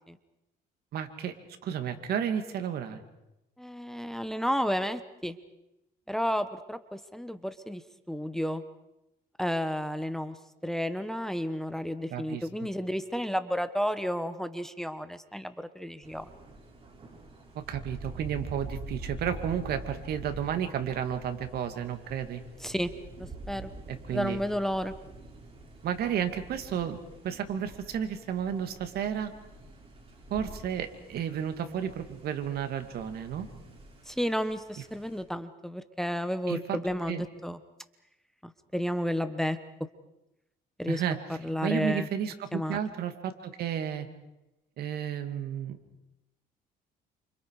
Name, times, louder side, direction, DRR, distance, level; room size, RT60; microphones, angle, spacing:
voice 1, 0.9-1.3 1.6-3.0 12.1-12.4 17.5-22.4 24.1-24.4 25.8-27.0 27.2-29.3 30.3-33.5 36.5-36.6 37.1-37.2 40.9-41.2 41.6-44.1 44.8-45.8, right 9 dB, 65° right, 7 dB, 2.7 m, -32 dB
voice 2, 3.6-5.4 6.1-7.8 8.1-8.6 9.4-10.4 10.6-16.2 22.6-22.9 23.2-23.7 24.1-24.9 34.1-37.6 38.4-39.6 40.8-41.0 41.3-42.1 42.5-42.8, equal, ahead, 10 dB, 1.2 m, -32 dB
Thunder, 16.0-35.2, right 2 dB, 35° right, 6.6 m, -46 dB
29.5 x 27.5 x 5.0 m, 0.92 s
cardioid pair, 110°, 17 cm